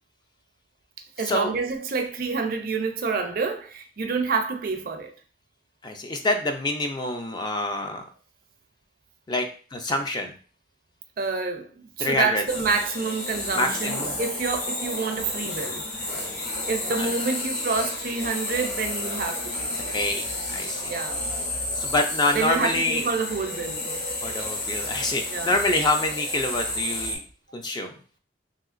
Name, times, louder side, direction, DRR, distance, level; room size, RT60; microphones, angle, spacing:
voice 1, 1.2-5.1 11.2-11.7 12.0-16.2 16.7-20.1 20.9-21.2 22.3-24.0 25.3-25.6, right 4 dB, 50° right, 0.4 m, -28 dB
voice 2, 5.8-8.0 9.3-9.5 9.7-10.3 12.0-12.4 13.6-14.1 16.9-17.1 19.9-20.2 20.5-20.8 21.8-23.0 24.2-27.2 27.5-27.9, left 2 dB, 25° left, 0.3 m, -26 dB
sound 1, 12.5-27.2, left 1 dB, 55° left, 1.0 m, -31 dB
3.0 x 2.8 x 2.4 m
head